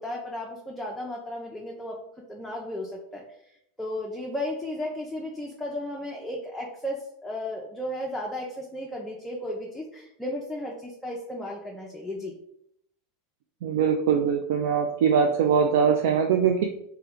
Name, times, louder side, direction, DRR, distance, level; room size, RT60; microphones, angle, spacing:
voice 1, 0.0-2.0 2.3-3.2 3.8-12.3, left 1 dB, 5° left, -3 dB, 0.6 m, -34 dB
voice 2, 13.6-16.6, right 7 dB, 70° right, 3 dB, 0.3 m, -22 dB
3.2 x 2.2 x 3.7 m, 0.73 s
hypercardioid pair, 100°, 0 cm